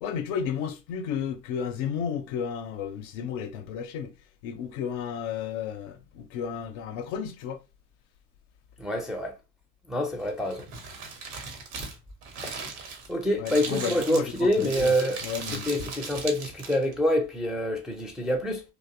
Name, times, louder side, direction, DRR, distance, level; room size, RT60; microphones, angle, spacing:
voice 1, 0.0-4.1 4.4-7.6 13.4-14.9 15.2-15.7, left 7 dB, 60° left, 0.5 m, -33 dB
voice 2, 8.8-9.3 9.9-10.7 12.4-12.5 13.1-15.2 15.5-18.6, equal, ahead, 0.4 m, -26 dB
Crumpling crinkling, 10.2-16.9, right 4 dB, 65° right, 0.8 m, -38 dB
2.5 x 2.0 x 2.4 m
figure-of-eight pair, 60°, 43 cm